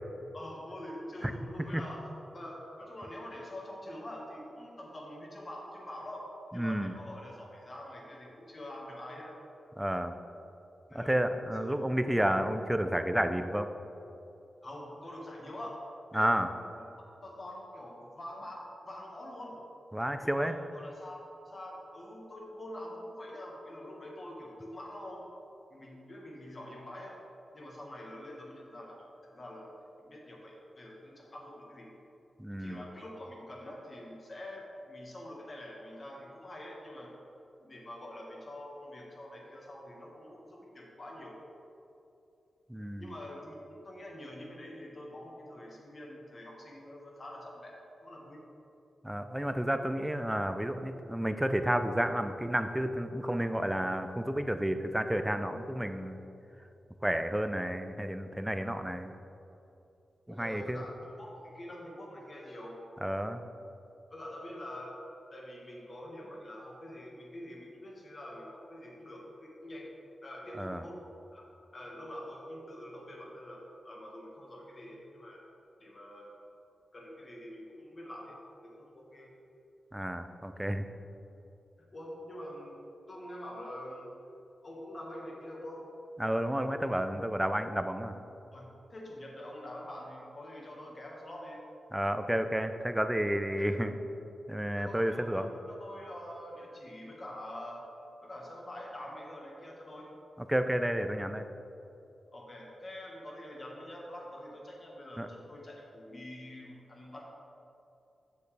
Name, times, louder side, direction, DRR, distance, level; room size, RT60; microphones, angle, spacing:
voice 1, 0.3-9.4 10.9-11.2 11.6-11.8 14.6-15.8 16.1-16.4 17.2-19.6 20.2-25.2 25.7-27.1 27.5-29.7 30.0-31.9 32.6-37.1 37.6-41.4 43.0-48.4 60.3-62.8 64.1-65.0 65.3-69.9 70.2-71.0 71.3-71.4 71.7-75.4 75.8-76.3 76.9-79.3 81.9-82.8 83.1-84.1 84.6-85.9 88.5-91.6 93.6-93.8 94.8-97.9 98.2-100.1 102.3-107.3, left 1 dB, 45° left, -2 dB, 1.6 m, -45 dB
voice 2, 6.5-6.9 9.8-10.1 10.9-13.7 16.1-16.5 19.9-20.5 32.4-32.8 42.7-43.1 49.0-56.2 57.0-59.1 60.4-60.8 63.0-63.4 70.6-70.8 79.9-80.8 86.2-88.1 91.9-93.9 94.5-95.5 100.5-101.5 105.2-105.3, right 1 dB, 10° right, 8 dB, 0.5 m, -31 dB
7.4 x 6.7 x 3.4 m, 2.8 s
cardioid pair, 60°, 0 cm